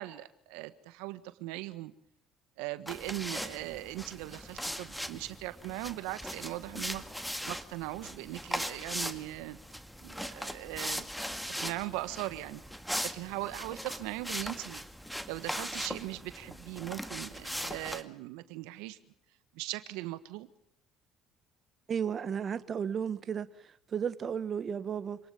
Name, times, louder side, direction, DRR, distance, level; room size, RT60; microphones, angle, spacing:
voice 1, 0.0-1.9 2.6-7.0 7.5-9.6 10.0-11.1 11.5-12.6 13.0-14.8 15.3-19.0 19.5-20.5, right 18 dB, 85° right, 13 dB, 1.5 m, -39 dB
sound 1, 2.9-18.0, equal, ahead, 2.1 m, -39 dB
voice 2, 21.9-25.2, right 7 dB, 45° right, 14 dB, 1.2 m, -34 dB
27.0 x 19.5 x 7.1 m, 0.70 s
supercardioid pair, 80°, 0 cm